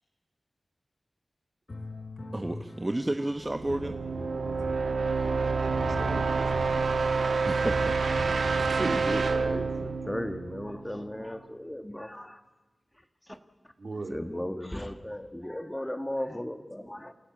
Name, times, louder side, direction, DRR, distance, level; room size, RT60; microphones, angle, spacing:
sound 1, 1.7-9.6, left 2 dB, 50° left, 4.7 m, -42 dB
voice 1, 2.3-4.0 7.4-8.0, right 1 dB, 25° right, 7 dB, 1.0 m, -31 dB
sound 2, 3.4-11.3, right 4 dB, 85° right, 1.2 m, -28 dB
voice 2, 5.2-6.9 8.6-9.0 13.8-14.2, right 3 dB, 65° right, 4 dB, 2.9 m, -38 dB
voice 3, 8.5-12.4 13.3-13.4 14.1-17.1, left 1 dB, 15° left, 8 dB, 1.5 m, -36 dB
28.5 x 14.0 x 8.4 m, 1.2 s
wide cardioid pair, 65°, 0 cm